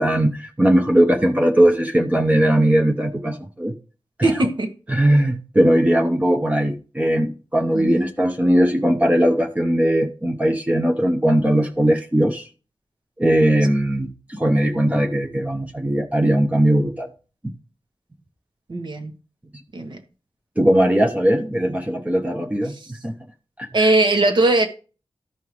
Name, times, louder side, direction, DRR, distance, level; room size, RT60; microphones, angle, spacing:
voice 1, 0.0-3.7 4.2-4.5 4.9-12.5 13.2-17.1 20.6-22.7 23.0-23.2 23.6-23.7, right 1 dB, 15° right, 0.7 m, -19 dB
voice 2, 4.2-4.7 7.7-8.1 18.7-19.1 19.7-20.0 22.7-22.9 23.7-24.7, right 2 dB, 65° right, 1.3 m, -20 dB
13.5 x 5.5 x 3.2 m
wide cardioid pair, 100°, 8 cm